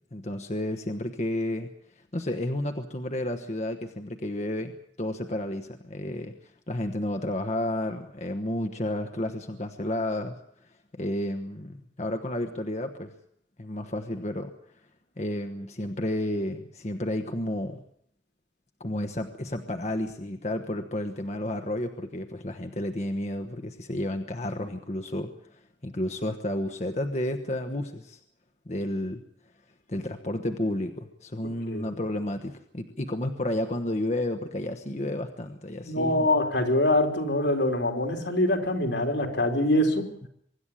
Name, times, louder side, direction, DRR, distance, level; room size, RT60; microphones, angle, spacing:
voice 1, 0.1-1.7 2.0-4.7 5.0-6.4 6.7-10.3 10.6-13.1 13.6-14.5 15.2-17.8 18.8-28.2 28.7-29.2 29.9-36.3, left 1 dB, 35° left, 5 dB, 1.1 m, -31 dB
voice 2, 35.8-40.1, left 1 dB, 75° left, 3 dB, 3.5 m, -24 dB
24.0 x 12.0 x 9.9 m, 0.70 s
head